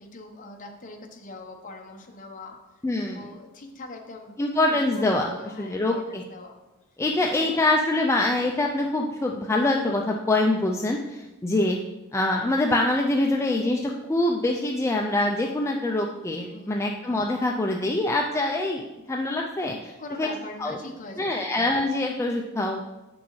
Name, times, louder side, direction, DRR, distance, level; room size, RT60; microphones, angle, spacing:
voice 1, 0.0-2.6 3.0-4.4 4.7-6.6 7.4-7.5 16.4-16.9 19.8-21.5, left 2 dB, 40° left, 3 dB, 0.9 m, -42 dB
voice 2, 2.8-3.2 4.4-6.2 7.0-11.8 12.1-19.9 20.2-20.3 20.6-20.8 21.2-22.9, left 2 dB, 15° left, 0 dB, 0.4 m, -25 dB
8.2 x 6.2 x 3.1 m, 1.0 s
head